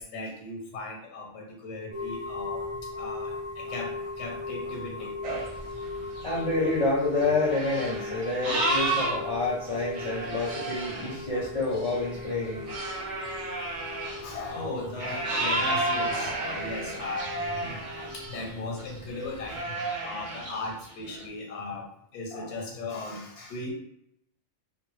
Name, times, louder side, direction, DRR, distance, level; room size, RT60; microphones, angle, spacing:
voice 1, 0.0-6.4 8.2-8.3 10.1-10.2 11.0-11.8 12.9-17.3 17.6-21.9 22.1-23.7, left 2 dB, 85° left, 0 dB, 0.9 m, -38 dB
sound 1, 1.9-19.6, left 3 dB, 10° right, 0.5 m, -39 dB
sound 2, 5.2-9.3 9.7-18.5 18.8-19.0 19.4-21.3, right 2 dB, 60° right, 0.3 m, -32 dB
voice 2, 6.2-12.7, left 2 dB, 50° left, -5 dB, 0.4 m, -28 dB
2.1 x 2.0 x 3.0 m, 0.78 s
omnidirectional pair, 1.1 m